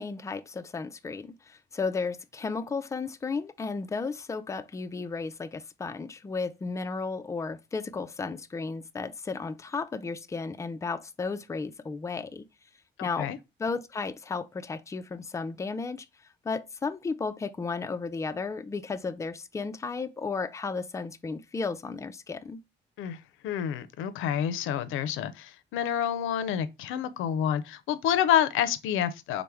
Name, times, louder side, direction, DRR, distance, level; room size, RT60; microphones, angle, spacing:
voice 1, 0.0-12.4 13.0-13.3 13.6-16.1 16.4-22.6, left 4 dB, 15° left, 0.3 m, -34 dB
voice 2, 13.0-13.4 23.0-29.4, left 9 dB, 90° left, 0.4 m, -28 dB
3.4 x 2.1 x 4.3 m
cardioid pair, 90°, 20 cm